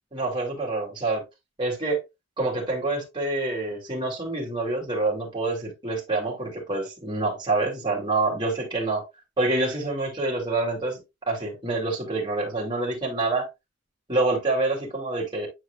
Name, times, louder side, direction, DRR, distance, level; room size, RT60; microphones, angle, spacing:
voice 1, 0.1-1.2 1.6-2.0 2.4-9.0 9.4-11.0 11.3-13.5 14.1-15.5, right 2 dB, 25° right, 2.7 m, -27 dB
8.9 x 4.8 x 2.4 m
head